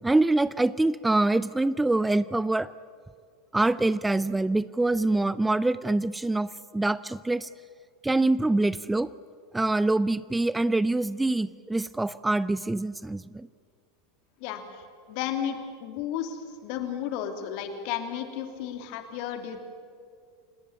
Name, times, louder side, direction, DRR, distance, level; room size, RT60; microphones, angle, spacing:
voice 1, 0.0-2.7 3.5-7.5 8.0-9.1 9.5-13.5, right 2 dB, 10° right, 17 dB, 0.5 m, -25 dB
voice 2, 14.4-14.8 15.1-19.6, left 9 dB, 55° left, 6 dB, 3.1 m, -33 dB
29.0 x 18.5 x 8.6 m, 2.2 s
hypercardioid pair, 85°, 0 cm